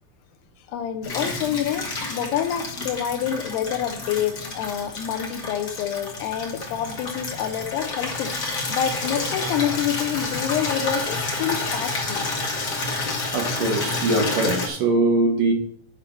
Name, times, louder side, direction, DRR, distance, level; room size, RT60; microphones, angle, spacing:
voice 1, 0.7-12.3, left 9 dB, 90° left, 7 dB, 2.8 m, -27 dB
Water tap faucet / Liquid, 1.0-14.7, left 3 dB, 60° left, 1.0 m, -29 dB
voice 2, 13.3-15.5, right 2 dB, 60° right, 1 dB, 2.9 m, -22 dB
10.5 x 4.2 x 5.7 m, 0.63 s
omnidirectional pair, 4.8 m